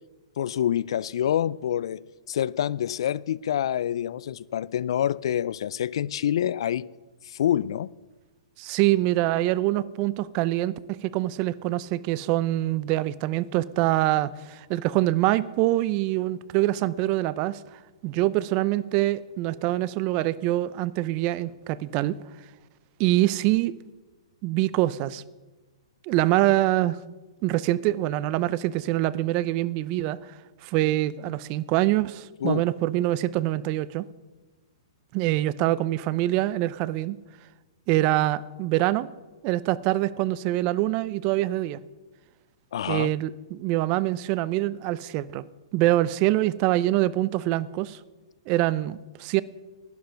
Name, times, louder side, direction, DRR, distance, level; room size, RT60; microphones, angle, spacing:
voice 1, 0.4-2.0 2.3-6.9 7.2-7.9 32.4-32.6 42.7-43.1, left 10 dB, 65° left, 0.4 m, -26 dB
voice 2, 8.6-17.6 18.0-22.2 23.0-23.7 24.4-25.2 26.0-27.0 27.4-30.2 30.6-34.1 35.1-37.2 37.9-39.1 39.4-41.8 42.9-45.4 45.7-48.0 48.5-49.4, right 16 dB, 35° right, 0.5 m, -24 dB
11.5 x 10.5 x 5.8 m
hypercardioid pair, 140°, 3 cm